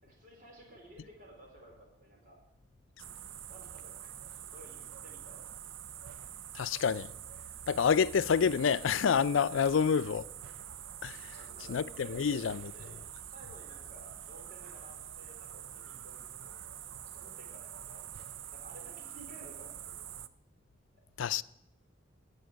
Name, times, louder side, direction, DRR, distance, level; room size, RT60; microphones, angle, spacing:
voice 1, 0.0-2.4 3.0-3.1 3.5-5.6 11.2-12.5 12.7-20.1, right 1 dB, 45° right, 4.5 m, -55 dB
sound 1, 3.0-20.3, right 10 dB, 85° right, 0.6 m, -46 dB
voice 2, 6.5-7.1 7.7-10.2 11.0-11.4 11.7-12.6 21.2-21.4, left 6 dB, 85° left, 0.4 m, -28 dB
17.5 x 8.1 x 6.3 m
head